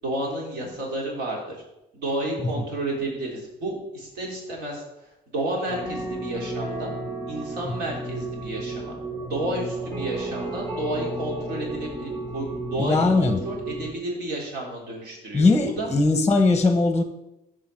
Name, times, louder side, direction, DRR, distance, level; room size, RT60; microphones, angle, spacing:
voice 1, 0.0-1.6 1.9-4.8 5.3-6.9 7.3-8.9 9.2-15.5 15.8-15.9, right 1 dB, 75° right, -2 dB, 3.5 m, -31 dB
sound 1, 5.7-13.9, right 1 dB, 30° right, 3.5 m, -33 dB
voice 2, 12.8-13.4 15.3-17.0, left 3 dB, 15° left, 7 dB, 0.8 m, -20 dB
14.0 x 5.1 x 4.4 m, 0.91 s
cardioid pair, 110°, 17 cm